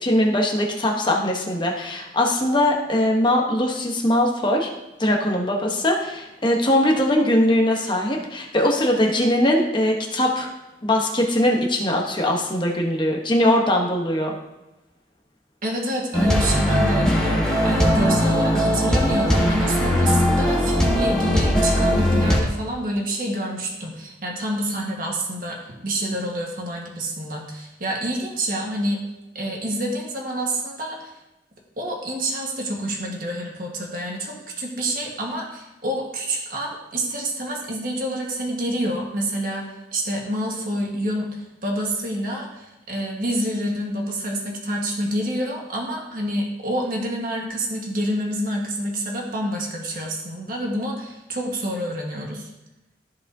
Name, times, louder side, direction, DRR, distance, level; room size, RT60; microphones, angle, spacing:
voice 1, 0.0-4.7 5.0-10.5 10.8-14.3, left 1 dB, 25° left, 0 dB, 1.0 m, -21 dB
voice 2, 15.6-29.0 29.3-31.1 31.8-52.5, right 1 dB, 50° right, -1 dB, 1.4 m, -27 dB
sound 1, 16.1-22.4, equal, 5° left, 1.3 m, -19 dB
14.0 x 4.9 x 2.7 m, 0.98 s
head